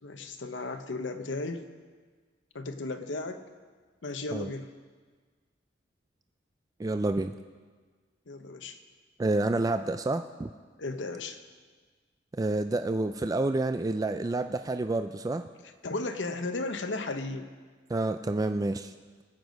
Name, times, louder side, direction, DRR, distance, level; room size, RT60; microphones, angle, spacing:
voice 1, 0.0-1.7 2.5-3.5 4.0-4.7 8.3-8.8 10.8-11.4 15.8-17.5, left 2 dB, 85° left, 8 dB, 0.9 m, -35 dB
voice 2, 6.8-7.3 9.2-10.5 12.3-15.5 17.9-18.9, right 2 dB, 20° right, 8 dB, 0.3 m, -29 dB
18.5 x 8.1 x 5.2 m, 1.5 s
head